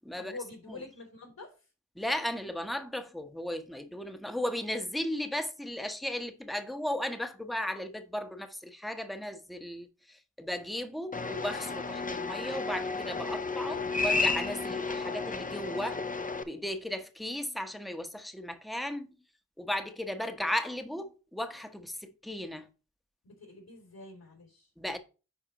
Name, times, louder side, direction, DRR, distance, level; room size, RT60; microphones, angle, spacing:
voice 1, 0.2-1.5 23.2-24.7, left 3 dB, 65° left, 3.5 m, -46 dB
voice 2, 2.0-16.0 16.5-19.1 19.6-22.7 24.8-25.0, left 1 dB, ahead, 0.9 m, -36 dB
sound 1, 11.1-16.4, left 3 dB, 20° left, 0.7 m, -32 dB
9.9 x 4.1 x 2.9 m
cardioid pair, 40°, 38 cm